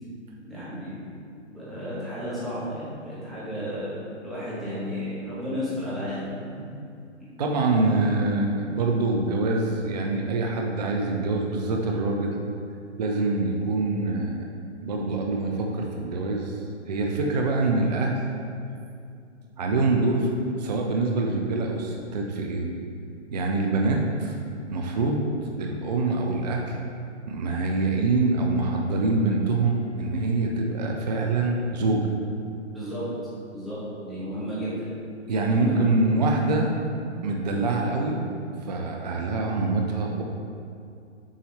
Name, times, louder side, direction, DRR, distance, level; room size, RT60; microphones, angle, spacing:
voice 1, 0.4-1.0 1.5-6.3 32.7-33.0 33.5-34.9 35.5-35.8, equal, ahead, -11 dB, 1.1 m, -33 dB
voice 2, 7.4-12.3 13.0-14.5 14.8-16.6 16.9-18.2 19.6-22.7 23.3-24.4 24.7-25.2 25.6-26.8 27.3-32.1 35.3-36.7 37.2-38.2 38.7-40.2, right 2 dB, 35° right, 0 dB, 0.5 m, -25 dB
7.3 x 4.1 x 3.2 m, 2.5 s
figure-of-eight pair, 135°, 36 cm